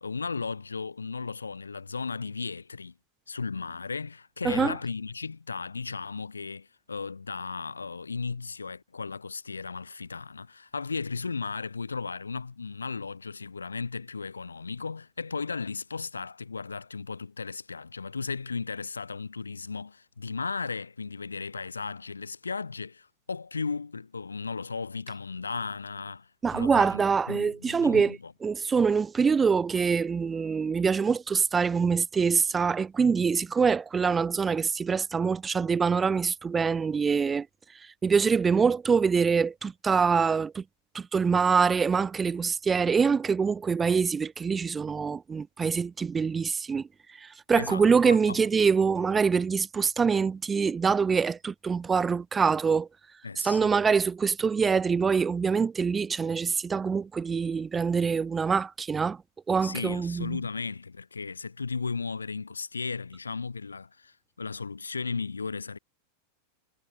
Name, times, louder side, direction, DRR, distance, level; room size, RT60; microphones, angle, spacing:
voice 1, 0.0-2.9 3.3-27.0 27.3-28.3 47.5-48.4 53.2-53.7 59.6-65.8, left 4 dB, 75° left, 2.8 m, -35 dB
voice 2, 4.4-4.7 26.4-37.5 37.8-40.6 40.9-46.9 47.2-52.9 53.4-59.2 59.5-60.4, right 5 dB, 15° right, 1.4 m, -25 dB
figure-of-eight pair, 90°, 0 cm